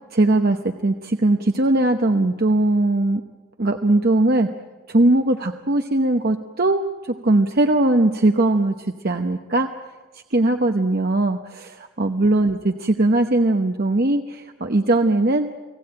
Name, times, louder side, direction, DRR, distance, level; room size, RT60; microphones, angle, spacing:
voice 1, 0.1-3.2 3.6-4.5 4.9-9.7 10.1-15.5, right 2 dB, 45° right, 5 dB, 0.9 m, -20 dB
30.0 x 19.0 x 8.8 m, 1.3 s
head